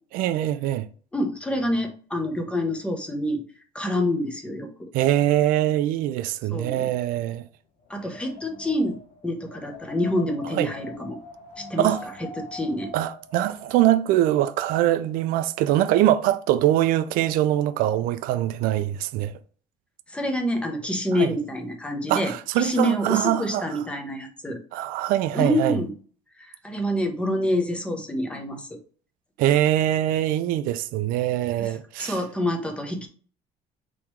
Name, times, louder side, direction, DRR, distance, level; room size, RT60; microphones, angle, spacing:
voice 1, 0.1-0.9 4.9-7.4 10.5-10.7 11.8-12.0 12.9-19.3 21.2-21.3 22.1-23.8 24.7-25.8 29.4-32.2, right 13 dB, 75° right, 0.4 m, -23 dB
voice 2, 1.1-3.4 3.7-4.9 6.5-6.9 7.9-11.2 11.6-11.9 12.4-12.9 20.1-24.6 25.3-25.9 26.4-28.7 31.6-31.7 32.0-33.1, left 1 dB, 5° left, 0.8 m, -27 dB
Wind, 7.8-13.8, left 4 dB, 70° left, 1.1 m, -43 dB
3.6 x 3.0 x 4.5 m
cardioid pair, 165°, 15 cm